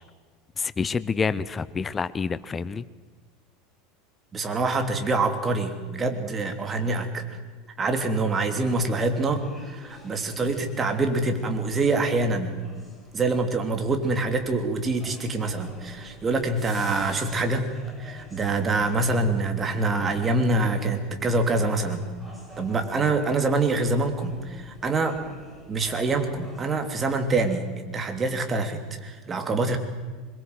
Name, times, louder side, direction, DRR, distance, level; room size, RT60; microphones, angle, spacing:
voice 1, 0.6-2.8, left 5 dB, 20° left, 16 dB, 0.8 m, -28 dB
voice 2, 4.3-7.2 7.8-12.6 13.1-17.7 18.0-22.0 22.6-25.2 25.7-29.8, right 3 dB, 25° right, 6 dB, 3.1 m, -25 dB
sound 1, 8.4-26.9, left 1 dB, ahead, 6.4 m, -47 dB
22.5 x 22.0 x 7.9 m, 1.5 s
figure-of-eight pair, 80°, 0 cm